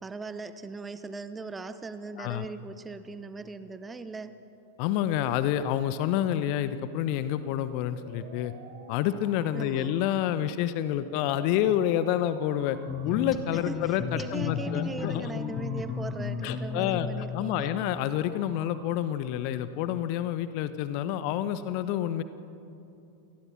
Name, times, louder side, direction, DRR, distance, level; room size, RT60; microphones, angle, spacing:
voice 1, 0.0-4.3 9.5-10.0 13.6-17.7, right 3 dB, 15° right, 12 dB, 1.0 m, -39 dB
voice 2, 4.8-8.5 8.9-12.8 13.0-15.3 16.4-22.2, left 11 dB, 45° left, 13 dB, 1.0 m, -28 dB
sound 1, 7.6-19.6, right 4 dB, 50° right, 3.0 m, -51 dB
sound 2, 12.9-18.1, left 6 dB, 25° left, 1.3 m, -34 dB
28.0 x 19.5 x 6.0 m, 2.7 s
figure-of-eight pair, 90°, 0 cm